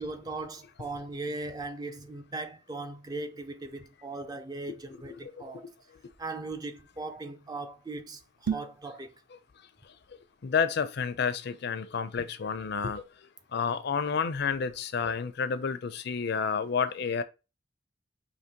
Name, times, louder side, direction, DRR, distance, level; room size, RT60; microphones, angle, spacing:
voice 1, 0.0-5.7 6.2-9.1, right 2 dB, 20° right, 0.4 m, -38 dB
sound 1, 8.3-8.9, right 7 dB, 75° right, 0.5 m, -32 dB
voice 2, 10.4-13.0 13.5-17.2, left 6 dB, 55° left, 0.5 m, -30 dB
5.0 x 2.9 x 2.8 m
head